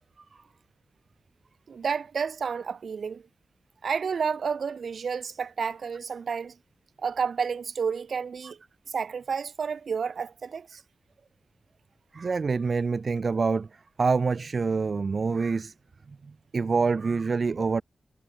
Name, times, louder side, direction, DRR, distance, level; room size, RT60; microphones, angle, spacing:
voice 1, 1.7-3.2 3.8-6.6 7.0-8.6 8.9-10.8, right 6 dB, 70° right, 5.5 m, -30 dB
voice 2, 12.1-15.7 16.1-17.8, right 4 dB, 55° right, 3.5 m, -26 dB
cardioid pair, 75°, 0 cm